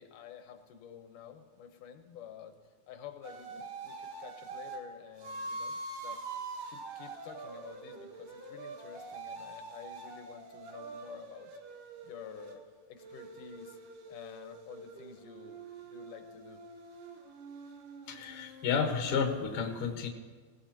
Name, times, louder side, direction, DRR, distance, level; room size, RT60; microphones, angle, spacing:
voice 1, 0.0-2.6 2.9-6.2 6.7-11.5 12.0-13.8 14.1-16.6, left 8 dB, 90° left, 6 dB, 2.6 m, -50 dB
sound 1, 3.2-4.8 5.2-12.6 13.0-19.3, right 3 dB, 90° right, 3.0 m, -45 dB
voice 2, 18.1-20.1, left 6 dB, 55° left, 2 dB, 2.0 m, -31 dB
19.5 x 17.5 x 2.9 m, 1.5 s
omnidirectional pair, 3.6 m